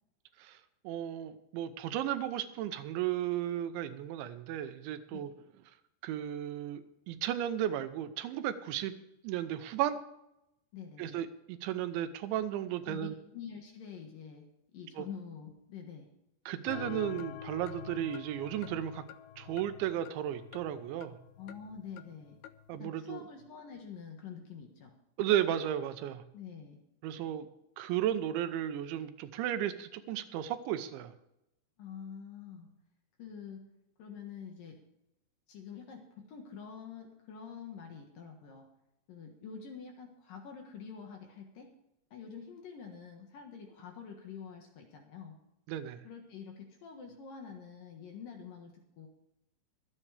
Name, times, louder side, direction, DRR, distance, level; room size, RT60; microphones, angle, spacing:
voice 1, 0.8-5.3 6.0-8.9 9.2-10.0 11.0-13.1 15.0-15.1 16.5-19.0 19.4-21.2 22.7-23.2 25.2-26.2 27.0-27.5 27.8-31.1 45.7-46.0, right 11 dB, 85° right, 10 dB, 3.2 m, -34 dB
voice 2, 10.7-11.2 12.9-16.1 21.4-22.4 22.8-24.9 26.3-26.8 31.8-32.7 33.2-33.6 34.0-34.8 35.5-38.7 39.1-41.7 42.1-45.4 46.0-49.1, left 7 dB, 60° left, 3 dB, 2.7 m, -47 dB
sound 1, 16.7-22.7, left 10 dB, 80° left, 2.3 m, -46 dB
24.5 x 8.5 x 3.4 m, 0.85 s
omnidirectional pair, 5.2 m